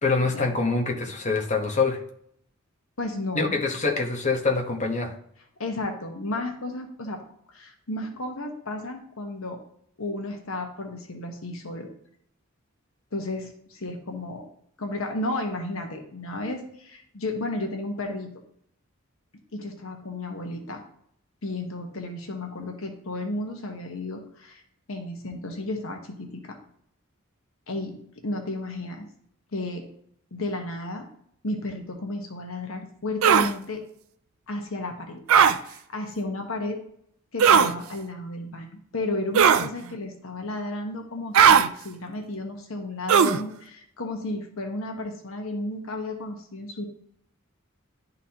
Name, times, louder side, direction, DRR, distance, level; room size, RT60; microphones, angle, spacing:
voice 1, 0.0-2.0 3.3-5.1, left 3 dB, 35° left, 2 dB, 1.0 m, -25 dB
voice 2, 3.0-3.6 5.6-7.2 7.5-9.6 10.0-11.9 13.1-14.5 14.8-18.4 19.5-20.8 21.4-24.6 24.9-26.6 27.7-29.1 29.5-29.9 30.3-31.1 31.4-33.8 34.5-35.2 35.5-36.8 37.3-46.9, left 2 dB, 75° left, 3 dB, 1.1 m, -33 dB
sound 1, 33.2-33.5 35.3-35.6 37.4-37.7 39.4-39.7 41.3-41.7 43.1-43.4, right 7 dB, 80° right, 0.4 m, -16 dB
11.0 x 4.0 x 2.9 m, 0.69 s
head